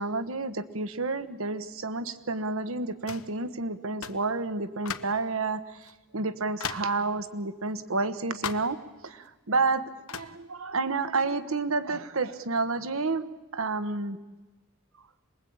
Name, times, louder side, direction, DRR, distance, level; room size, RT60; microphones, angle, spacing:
voice 1, 0.0-5.6 6.1-8.8 9.0-9.8 10.1-13.2 13.5-14.2, right 3 dB, 70° right, 12 dB, 1.2 m, -30 dB
sound 1, 3.1-3.4 4.0-4.3 4.9-5.2 5.8-5.9 6.6-7.0 8.4-8.8 10.1-10.4, left 7 dB, 75° left, 1.2 m, -36 dB
27.0 x 21.0 x 8.7 m, 1.2 s
head